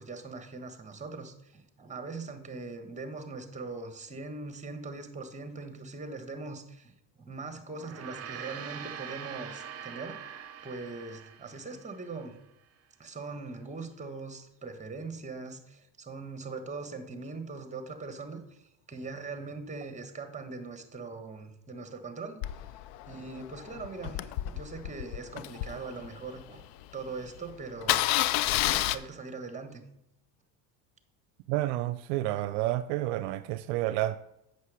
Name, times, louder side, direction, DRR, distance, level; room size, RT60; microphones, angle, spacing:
voice 1, 0.0-6.9 7.2-10.2 10.6-12.4 13.0-22.4 23.1-28.1 28.4-29.8, right 3 dB, 15° right, 1.5 m, -41 dB
Gong, 7.7-12.3, right 8 dB, 30° right, 0.9 m, -43 dB
Engine starting, 22.4-26.6 27.1-27.2 27.4-27.5 27.8-29.0, left 15 dB, 70° left, 0.7 m, -30 dB
voice 2, 31.5-34.2, right 15 dB, 70° right, 0.6 m, -30 dB
8.2 x 6.4 x 4.9 m
supercardioid pair, 90°, 50 cm